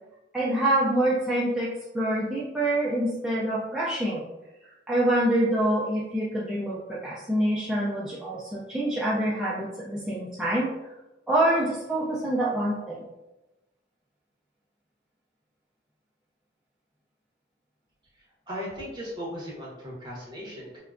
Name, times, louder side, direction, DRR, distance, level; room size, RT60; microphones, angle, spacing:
voice 1, 0.3-4.3 4.9-10.7 11.3-13.0, right 1 dB, 5° right, -8 dB, 0.3 m, -26 dB
voice 2, 18.5-20.8, equal, 25° right, -5 dB, 0.9 m, -37 dB
3.6 x 2.1 x 2.5 m, 1.0 s
head